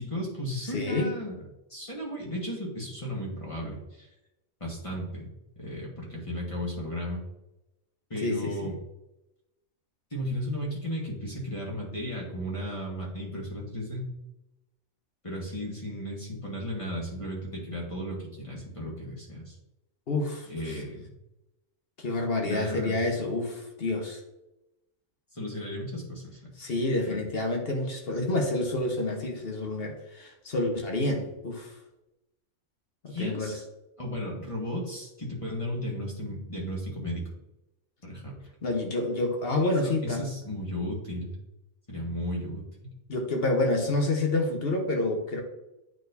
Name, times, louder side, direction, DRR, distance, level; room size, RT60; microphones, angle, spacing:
voice 1, 0.0-1.3 1.7-4.1 4.6-5.3 5.6-7.2 8.1-8.7 10.1-14.1 15.2-19.6 20.5-21.1 22.4-23.0 25.3-26.4 27.0-27.2 33.1-33.6 34.0-37.2 38.0-38.3 39.6-41.3 41.9-42.9, equal, 25° left, -3 dB, 1.6 m, -35 dB
voice 2, 0.6-1.1 8.2-8.5 20.1-20.5 22.0-24.2 26.6-31.7 33.0-33.5 38.6-40.2 43.1-45.4, left 2 dB, 45° left, 2 dB, 1.2 m, -28 dB
9.1 x 4.3 x 2.7 m, 0.92 s
omnidirectional pair, 1.4 m